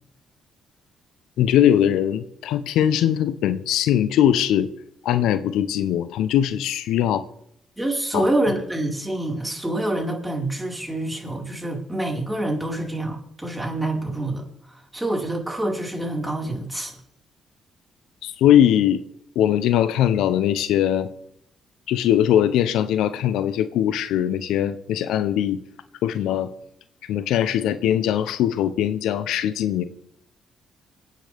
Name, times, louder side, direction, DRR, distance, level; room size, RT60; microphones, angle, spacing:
voice 1, 1.4-4.7 5.0-7.3 8.1-8.3 18.2-19.0 19.3-21.1 21.9-25.6 26.0-26.5 27.0-29.8, left 10 dB, 75° left, 13 dB, 0.8 m, -21 dB
voice 2, 7.8-16.9, right 1 dB, 10° right, -1 dB, 4.9 m, -27 dB
27.0 x 9.4 x 3.6 m, 0.74 s
hypercardioid pair, 50°, 0 cm